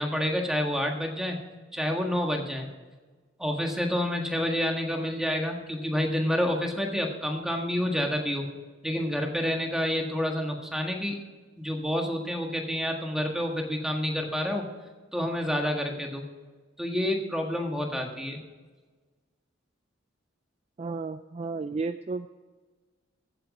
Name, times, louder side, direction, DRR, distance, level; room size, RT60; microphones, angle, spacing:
voice 1, 0.0-1.4 1.7-2.7 3.4-8.5 8.8-11.2 11.6-14.7 15.1-16.2 16.8-18.4, equal, 5° right, 2 dB, 1.6 m, -28 dB
voice 2, 20.8-22.3, right 4 dB, 30° right, 10 dB, 0.3 m, -33 dB
14.5 x 8.2 x 5.0 m, 1.3 s
head